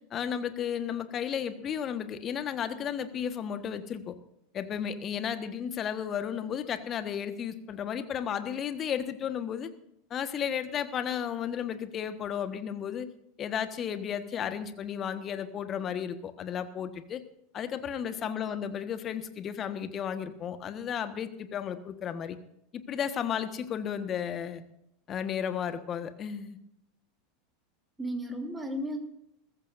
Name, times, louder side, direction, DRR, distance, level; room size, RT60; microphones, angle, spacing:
voice 1, 0.1-4.1 4.5-9.7 10.1-13.1 13.4-17.2 17.5-22.4 22.7-24.6 25.1-26.6, left 8 dB, 35° left, 10 dB, 1.4 m, -33 dB
voice 2, 18.2-18.6 28.0-29.0, equal, 10° right, 3 dB, 3.1 m, -35 dB
21.5 x 15.0 x 2.6 m, 0.77 s
figure-of-eight pair, 85°, 0 cm